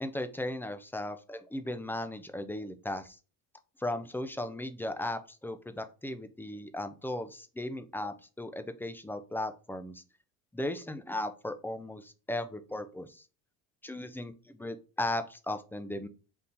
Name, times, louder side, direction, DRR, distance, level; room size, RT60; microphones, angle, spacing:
voice 1, 0.0-3.2 3.8-10.0 10.5-13.2 13.8-14.3 14.6-16.1, left 1 dB, 5° left, 9 dB, 0.3 m, -36 dB
3.7 x 2.8 x 4.0 m, 0.34 s
hypercardioid pair, 75°, 42 cm